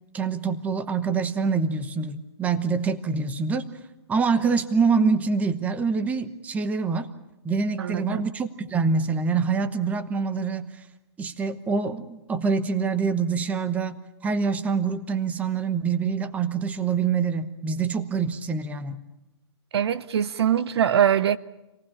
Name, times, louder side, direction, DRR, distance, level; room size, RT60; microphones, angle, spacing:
voice 1, 0.1-3.7 4.1-7.1 7.4-10.8 11.2-14.0 14.2-19.0, right 5 dB, 10° right, 1.0 m, -25 dB
voice 2, 7.8-8.2 19.7-21.4, right 9 dB, 65° right, 0.8 m, -22 dB
27.0 x 18.5 x 8.8 m
hypercardioid pair, 150°, 14 cm